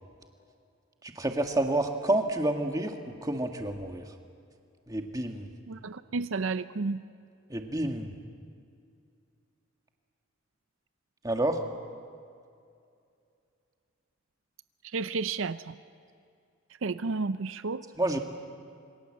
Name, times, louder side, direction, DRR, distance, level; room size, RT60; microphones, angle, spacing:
voice 1, 1.0-4.0 4.9-5.5 7.5-8.1 11.2-11.6 18.0-18.2, right 1 dB, 15° right, 4 dB, 1.7 m, -29 dB
voice 2, 5.7-7.0 14.8-15.8 16.8-17.8, right 4 dB, 70° right, 13 dB, 0.6 m, -32 dB
27.5 x 24.0 x 7.6 m, 2.4 s
head